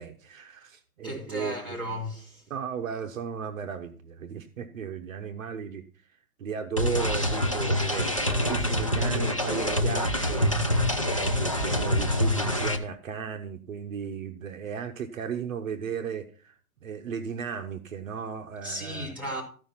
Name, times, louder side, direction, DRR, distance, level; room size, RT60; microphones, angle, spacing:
voice 1, 0.0-1.8 2.5-5.8 6.4-16.5 16.8-19.1, right 7 dB, 60° right, 1.1 m, -35 dB
voice 2, 1.0-2.4 18.6-19.4, equal, 5° right, 3.0 m, -35 dB
sound 1, 6.8-12.8, left 1 dB, 25° left, 0.4 m, -26 dB
14.0 x 5.3 x 5.7 m
hypercardioid pair, 170°, 46 cm